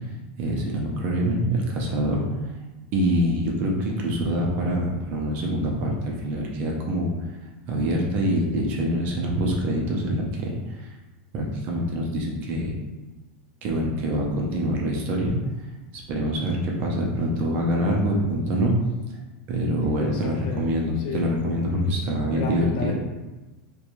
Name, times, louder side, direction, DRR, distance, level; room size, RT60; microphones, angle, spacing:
voice 1, 0.4-2.2 2.9-7.1 7.7-10.9 11.3-12.7 13.6-15.3 15.9-18.7 19.5-22.9, equal, 35° right, -1 dB, 0.4 m, -25 dB
voice 2, 19.8-20.7 21.0-21.3 22.3-22.9, left 4 dB, 45° left, 1 dB, 0.4 m, -32 dB
2.5 x 2.2 x 2.9 m, 1.1 s
supercardioid pair, 175°, 5 cm